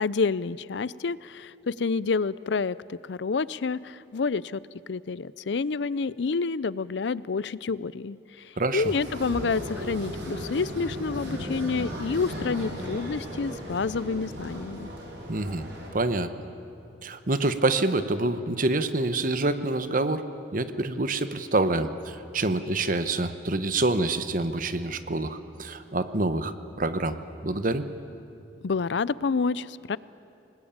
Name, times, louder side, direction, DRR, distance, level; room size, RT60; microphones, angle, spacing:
voice 1, 0.0-4.6 4.9-8.2 8.7-14.9 28.6-30.0, left 4 dB, 75° left, 19 dB, 0.5 m, -28 dB
voice 2, 8.6-8.9 15.3-15.7 15.9-16.3 17.0-20.2 20.5-27.2 27.4-27.9, right 2 dB, 50° right, 11 dB, 1.1 m, -26 dB
sound 1, 8.8-15.9, equal, 85° right, 5.7 m, -36 dB
27.0 x 19.5 x 8.8 m, 2.7 s
head